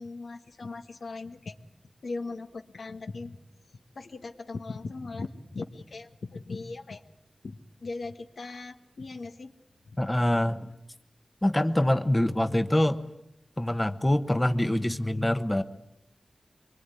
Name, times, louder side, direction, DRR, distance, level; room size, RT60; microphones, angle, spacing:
voice 1, 0.0-1.5 2.0-3.4 4.0-7.0 7.4-9.5 9.9-10.0, left 3 dB, 80° left, 7 dB, 1.6 m, -39 dB
voice 2, 10.0-10.7 11.4-13.1 13.6-15.6, left 1 dB, 15° left, 10 dB, 1.1 m, -25 dB
24.0 x 24.0 x 9.9 m, 0.85 s
wide cardioid pair, 85°, 0 cm